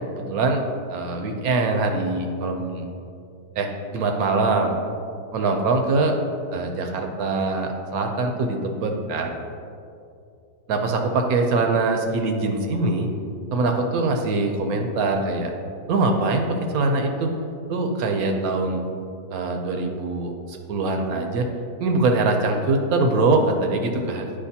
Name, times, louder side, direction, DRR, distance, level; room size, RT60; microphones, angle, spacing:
voice 1, 0.1-0.6 0.9-2.8 3.6-3.7 3.9-4.8 5.3-6.2 6.5-9.4 10.7-13.1 13.5-15.5 15.9-17.3 17.7-18.9 19.3-21.5 21.8-24.2, right 3 dB, 70° right, 4 dB, 1.0 m, -23 dB
8.8 x 5.0 x 2.8 m, 2.5 s
omnidirectional pair, 1.8 m